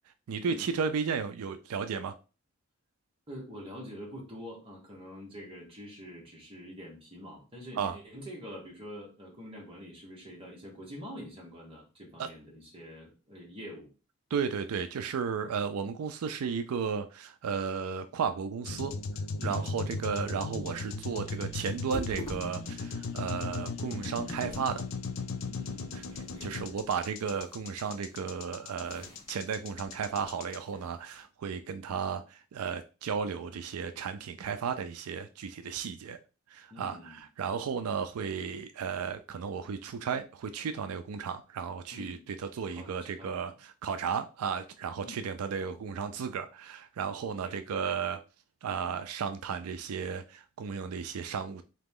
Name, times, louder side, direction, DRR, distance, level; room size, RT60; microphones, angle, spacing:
voice 1, 0.3-2.1 7.8-8.0 12.2-12.3 14.3-19.0 19.4-24.8 25.9-26.0 26.4-36.2 36.5-48.2 48.6-51.6, right 6 dB, 85° right, 0.4 m, -34 dB
voice 2, 3.3-13.9 15.4-15.5 19.4-19.8 25.5-26.0 26.3-26.7 36.7-37.2 41.9-42.2 42.7-43.5 45.0-45.2 47.2-47.6, equal, 25° right, 1.4 m, -46 dB
sound 1, 18.7-30.6, left 4 dB, 60° left, 0.5 m, -37 dB
sound 2, 20.0-31.2, left 1 dB, 25° left, 1.7 m, -49 dB
3.9 x 2.9 x 3.7 m
head